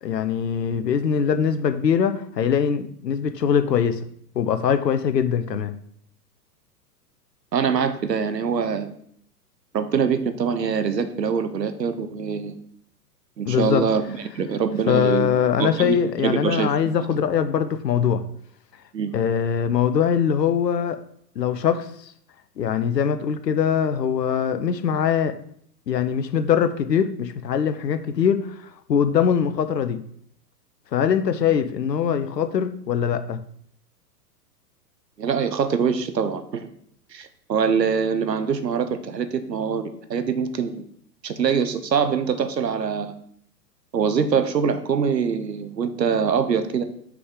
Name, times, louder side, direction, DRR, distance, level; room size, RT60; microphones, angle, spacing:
voice 1, 0.0-4.0 4.3-5.7 13.4-13.8 14.9-18.2 19.1-21.0 21.4-22.1 22.6-25.3 25.9-30.0 30.9-33.4, left 7 dB, 75° left, 11 dB, 0.7 m, -22 dB
voice 2, 7.5-8.9 9.7-12.6 13.4-15.3 15.6-16.8 18.9-19.1 35.2-36.7 37.1-40.8 41.2-43.1 43.9-46.8, right 6 dB, 85° right, 10 dB, 0.8 m, -24 dB
5.9 x 4.9 x 3.7 m, 0.66 s
figure-of-eight pair, 105°, 49 cm